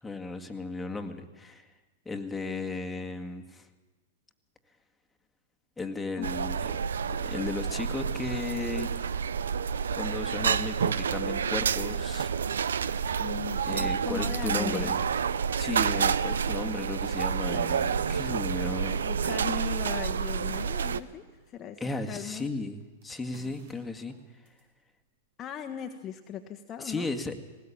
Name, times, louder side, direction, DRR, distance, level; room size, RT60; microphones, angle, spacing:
voice 1, 0.0-1.7 2.1-3.7 5.8-6.7 7.1-9.3 9.9-12.3 13.7-15.0 15.6-19.0 21.8-24.1 26.8-27.4, left 3 dB, 10° left, 4 dB, 2.0 m, -35 dB
sound 1, 6.2-21.0, right 6 dB, 80° right, 0.7 m, -29 dB
voice 2, 13.2-14.9 19.0-21.8 22.1-22.5 25.4-27.1, left 9 dB, 30° left, 5 dB, 1.4 m, -38 dB
sound 2, 20.5-21.6 22.0-24.6, right 2 dB, 60° right, 5.6 m, -54 dB
19.0 x 18.5 x 8.7 m, 1.3 s
hypercardioid pair, 110°, 0 cm